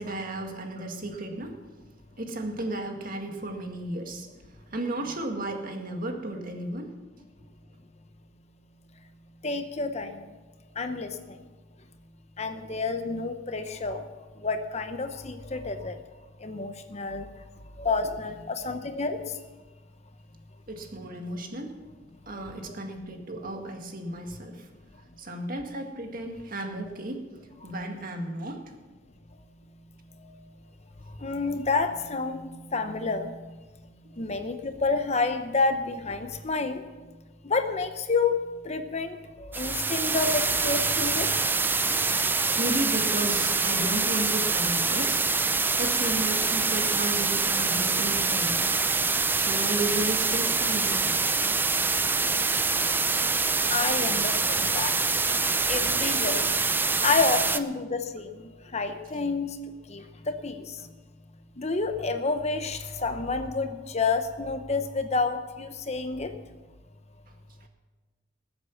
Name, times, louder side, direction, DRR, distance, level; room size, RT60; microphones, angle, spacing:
voice 1, 0.0-1.5 2.2-6.9 20.7-21.7 22.3-24.7 25.2-27.2 27.6-28.6 42.6-45.2 45.8-48.7 49.4-51.0, right 1 dB, 45° right, 3 dB, 1.9 m, -34 dB
voice 2, 9.4-10.2 10.8-11.4 12.4-14.1 14.4-16.0 16.4-17.3 17.8-19.4 22.3-22.8 30.2-30.3 31.2-33.5 34.2-36.8 37.4-38.4 38.6-41.3 51.0-51.1 53.7-54.9 55.4-56.5 57.0-59.6 59.9-60.9 61.6-66.3, left 4 dB, 35° left, 8 dB, 0.8 m, -29 dB
sound 1, 39.5-57.6, right 4 dB, 10° right, 0.4 m, -25 dB
20.0 x 8.0 x 7.2 m, 1.3 s
head